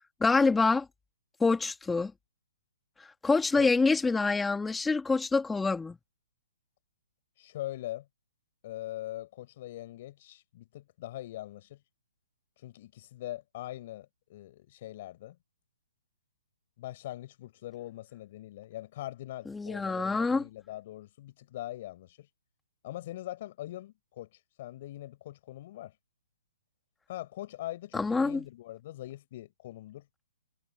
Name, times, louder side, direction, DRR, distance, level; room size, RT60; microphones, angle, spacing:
voice 1, 0.2-0.9 1.4-2.1 3.2-6.0 19.5-20.4 27.9-28.4, left 4 dB, 5° left, 2.1 m, -26 dB
voice 2, 7.4-8.1 8.6-11.8 12.6-15.4 16.8-22.3 22.8-26.0 27.1-30.1, left 14 dB, 45° left, 4.3 m, -42 dB
hypercardioid pair, 145°, 0 cm